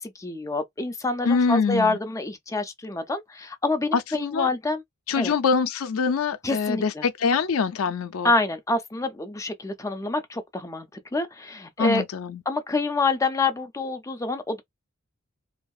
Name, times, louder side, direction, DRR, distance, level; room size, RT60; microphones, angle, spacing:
voice 1, 0.0-4.8 5.2-5.3 6.4-7.1 8.2-10.9 11.1-12.0 12.5-14.6, left 3 dB, 15° left, 0.5 m, -27 dB
voice 2, 1.3-2.0 3.9-4.5 5.1-8.3 11.8-12.4, left 5 dB, 75° left, 0.4 m, -24 dB
2.7 x 2.5 x 2.3 m
head